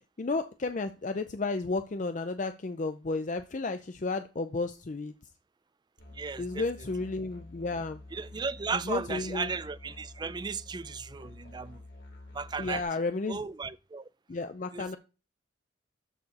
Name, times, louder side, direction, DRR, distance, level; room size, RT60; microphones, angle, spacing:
voice 1, 0.2-5.1 6.4-8.0 8.8-9.5 12.6-13.4 14.3-15.0, left 3 dB, 40° left, 0.5 m, -32 dB
Musical instrument, 6.0-12.8, left 2 dB, 70° left, 3.5 m, -49 dB
voice 2, 6.1-6.6 8.1-11.8 12.3-12.8 13.3-14.1 14.7-15.0, right 5 dB, 20° right, 0.3 m, -35 dB
13.0 x 4.7 x 4.1 m
head